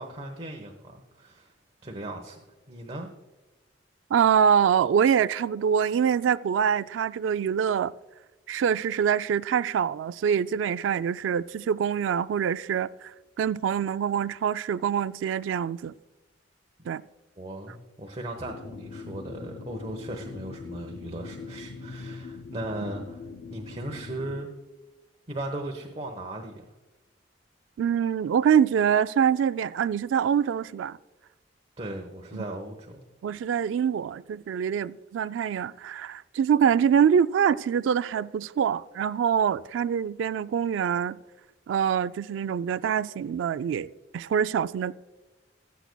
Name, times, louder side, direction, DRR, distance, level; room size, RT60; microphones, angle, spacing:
voice 1, 0.0-1.5 1.8-2.4 2.7-3.1 17.4-23.2 23.5-24.5 25.3-26.7 31.8-33.0, right 1 dB, 30° right, 1.0 m, -37 dB
voice 2, 4.1-7.9 8.5-13.1 13.4-15.9 16.9-17.0 27.8-31.0 32.3-32.5 33.2-41.2 41.7-44.9, right 8 dB, 85° right, 0.3 m, -25 dB
sound 1, 18.4-24.4, left 4 dB, 75° left, 0.5 m, -42 dB
19.5 x 8.2 x 2.2 m
head